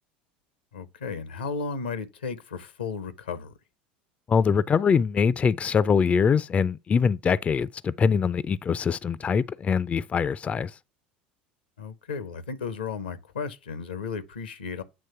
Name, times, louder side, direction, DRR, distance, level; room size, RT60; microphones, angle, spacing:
voice 1, 0.7-3.5 11.8-14.8, left 5 dB, 85° left, 0.8 m, -34 dB
voice 2, 4.3-10.7, left 6 dB, 25° left, 0.3 m, -23 dB
8.7 x 3.0 x 5.6 m
hypercardioid pair, 75°, 5 cm